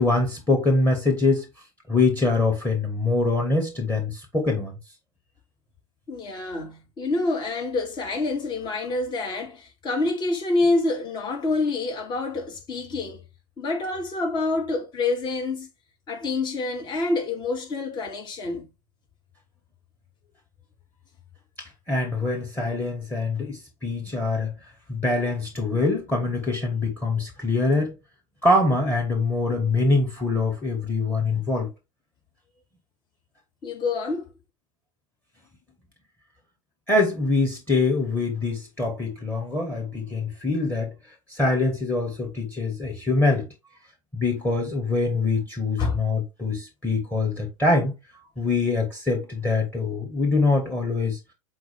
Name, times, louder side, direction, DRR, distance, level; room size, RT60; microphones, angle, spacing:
voice 1, 0.0-1.5 1.9-4.7 21.6-24.5 24.9-27.9 28.4-31.7 36.9-40.9 41.3-43.5 44.1-47.9 48.4-51.2, left 3 dB, 10° left, 2.2 m, -24 dB
voice 2, 6.1-13.2 13.6-15.7 16.1-18.7 33.6-34.3 45.8-46.0, left 3 dB, 25° left, 2.3 m, -27 dB
7.7 x 4.4 x 3.7 m
figure-of-eight pair, 90°, 18 cm